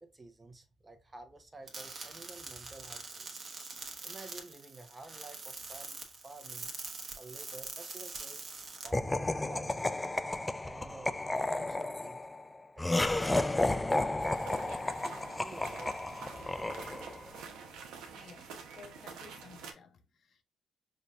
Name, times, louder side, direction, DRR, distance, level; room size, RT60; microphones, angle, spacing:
voice 1, 0.0-3.5 4.0-6.0 6.2-6.7 7.1-8.4 8.8-10.1 10.6-12.2 12.8-13.0 13.3-14.9 15.3-16.6, right 2 dB, 20° right, 0.9 m, -51 dB
sound 1, 1.7-8.9, right 4 dB, 40° right, 1.1 m, -44 dB
Laughter, 8.9-17.3, left 2 dB, 15° left, 0.3 m, -32 dB
sound 2, 14.2-19.7, right 6 dB, 90° right, 0.8 m, -48 dB
voice 2, 18.1-20.4, left 5 dB, 60° left, 0.6 m, -55 dB
5.0 x 2.7 x 2.4 m
cardioid pair, 90°, 0 cm